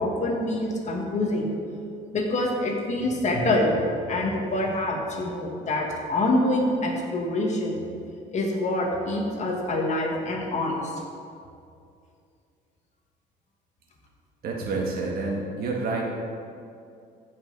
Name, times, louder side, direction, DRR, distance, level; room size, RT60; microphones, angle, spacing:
voice 1, 0.0-1.5 2.1-3.8 4.1-7.8 8.3-10.9, left 1 dB, 45° left, 0 dB, 1.8 m, -26 dB
voice 2, 14.4-16.0, right 3 dB, 65° right, -1 dB, 1.9 m, -28 dB
14.5 x 5.7 x 4.1 m, 2.5 s
cardioid pair, 110°, 17 cm